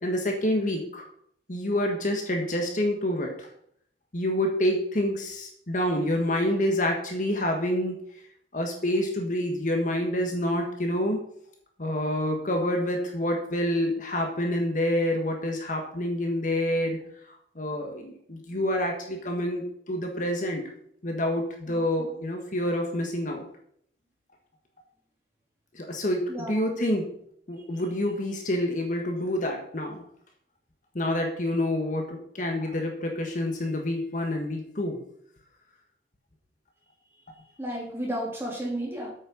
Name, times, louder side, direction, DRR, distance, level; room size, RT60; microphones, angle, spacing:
voice 1, 0.0-1.1 1.5-3.5 4.1-8.0 8.5-11.2 11.8-17.0 17.5-20.6 21.0-23.5 25.7-27.1 27.5-30.0 30.9-35.0, left 1 dB, 45° left, 2 dB, 1.6 m, -27 dB
voice 2, 21.7-22.1 26.3-26.8 27.5-27.8 37.1-39.1, right 1 dB, 15° right, -4 dB, 3.5 m, -34 dB
8.7 x 6.5 x 6.3 m, 0.66 s
head